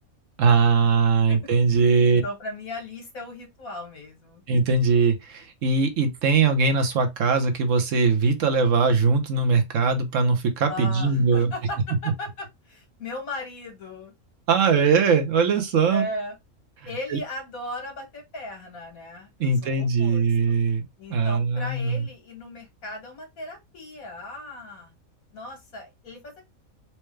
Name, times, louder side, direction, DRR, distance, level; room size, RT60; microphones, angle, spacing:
voice 1, 0.4-2.2 4.5-11.5 14.5-16.0 17.1-17.2 19.4-20.8 21.1-22.1, right 4 dB, 65° right, 1.1 m, -21 dB
voice 2, 2.1-4.4 10.7-14.1 15.9-16.3 16.9-20.6 21.0-24.9 25.3-26.4, left 1 dB, 75° left, 2.1 m, -37 dB
4.4 x 2.2 x 3.2 m
omnidirectional pair, 1.5 m